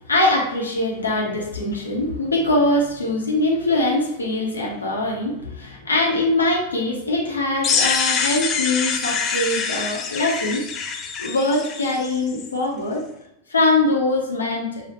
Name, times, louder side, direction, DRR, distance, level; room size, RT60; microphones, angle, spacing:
voice 1, 0.1-10.6 11.2-13.0 13.5-14.9, left 2 dB, 75° left, -1 dB, 1.0 m, -22 dB
sound 1, 7.6-12.5, left 6 dB, 30° left, 0.5 m, -25 dB
5.9 x 2.3 x 3.0 m, 0.83 s
figure-of-eight pair, 90°, 0 cm